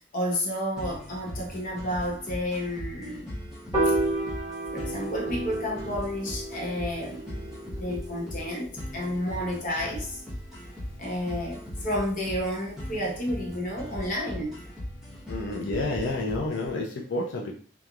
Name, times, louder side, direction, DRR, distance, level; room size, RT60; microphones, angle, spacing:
voice 1, 0.1-3.3 3.8-3.9 4.7-7.3 7.7-10.2 11.0-14.6 15.1-15.3, equal, 45° left, 0.8 m, -31 dB
sound 1, 0.8-16.7, equal, ahead, 0.9 m, -39 dB
Piano, 3.7-10.0, right 2 dB, 20° right, 1.3 m, -32 dB
voice 2, 15.3-17.5, left 2 dB, 80° left, 0.5 m, -30 dB
2.9 x 2.3 x 2.4 m
head